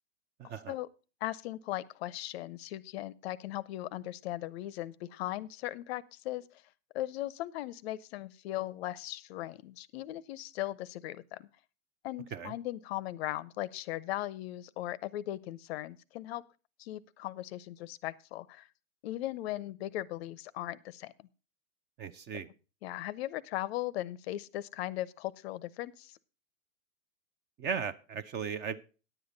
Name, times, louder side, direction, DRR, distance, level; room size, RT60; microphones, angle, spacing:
voice 1, 0.4-0.7 12.3-12.5 22.0-22.5 27.6-28.8, right 6 dB, 25° right, 15 dB, 0.6 m, -37 dB
voice 2, 1.2-6.4 6.9-11.5 12.0-16.4 16.8-18.7 19.0-21.1 22.8-26.2, left 15 dB, 50° left, 19 dB, 0.6 m, -38 dB
10.0 x 7.9 x 5.2 m, 0.35 s
hypercardioid pair, 110°, 42 cm